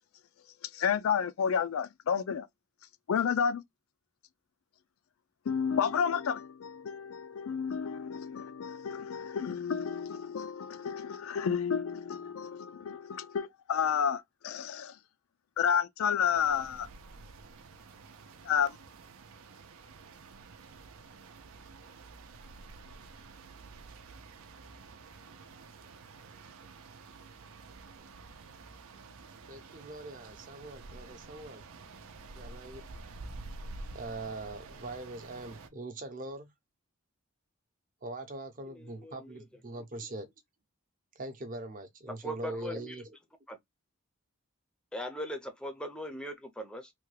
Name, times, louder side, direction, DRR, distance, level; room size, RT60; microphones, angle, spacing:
voice 1, 0.6-2.5 3.1-3.6 5.5-15.0 15.6-16.9 18.4-18.8, left 7 dB, 75° left, 0.4 m, -31 dB
sound 1, 16.3-35.7, right 3 dB, 80° right, 0.5 m, -49 dB
voice 2, 29.5-31.6 32.4-32.8 33.9-36.5 38.0-40.3 41.2-43.2, right 2 dB, 40° right, 0.7 m, -42 dB
voice 3, 38.7-39.4 42.1-43.0 43.5-43.6 44.9-46.9, left 1 dB, 5° left, 0.5 m, -40 dB
3.4 x 2.2 x 3.2 m
head